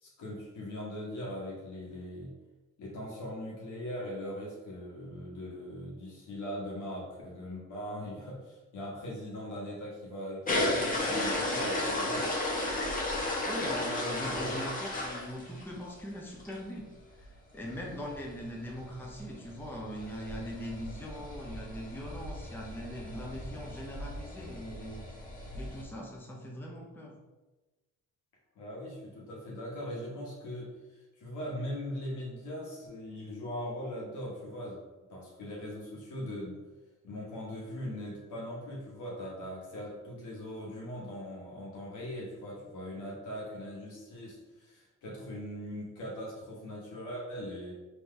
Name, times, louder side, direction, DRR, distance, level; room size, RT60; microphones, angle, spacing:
voice 1, 0.0-2.3 2.8-12.3 28.5-34.8 35.1-36.6 37.0-47.7, equal, 75° left, -4 dB, 1.4 m, -40 dB
sound 1, 10.5-15.9 16.3-16.6 16.9-17.0 17.2-17.3 17.6-25.8, left 1 dB, 30° left, 1.1 m, -35 dB
voice 2, 13.5-25.0 25.5-27.2, equal, 5° left, -2 dB, 0.7 m, -41 dB
3.8 x 3.1 x 3.3 m, 1.1 s
cardioid pair, 90°, 30 cm